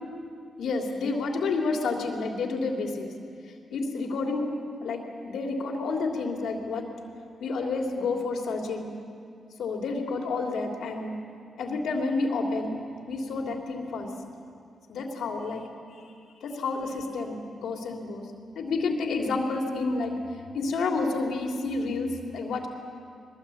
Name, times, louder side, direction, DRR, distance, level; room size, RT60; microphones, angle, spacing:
voice 1, 0.6-3.1 3.7-4.5 4.8-6.8 7.4-8.9 9.6-11.2 11.6-12.8 13.1-14.1 14.9-15.6 16.4-18.2 18.5-20.1 20.5-22.7, left 3 dB, 85° left, 1 dB, 3.1 m, -29 dB
21.5 x 20.5 x 8.6 m, 2.4 s
cardioid pair, 90°, 0 cm